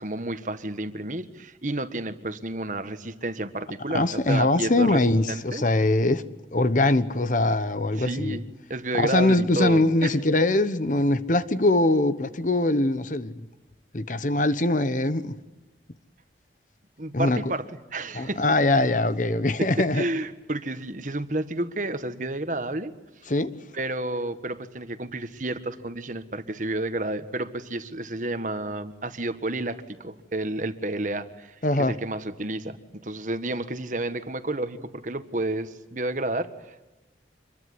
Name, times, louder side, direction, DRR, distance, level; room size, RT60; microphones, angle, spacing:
voice 1, 0.0-5.6 8.0-8.4 8.7-10.1 17.0-18.4 19.6-22.9 23.7-32.8 33.0-36.9, right 2 dB, 45° right, 1.5 m, -31 dB
voice 2, 3.9-6.2 6.5-8.4 9.0-13.5 13.9-15.3 17.1-17.4 18.1-20.0 23.3-23.5 31.6-31.9, left 2 dB, 45° left, 1.1 m, -22 dB
26.0 x 22.0 x 9.6 m
head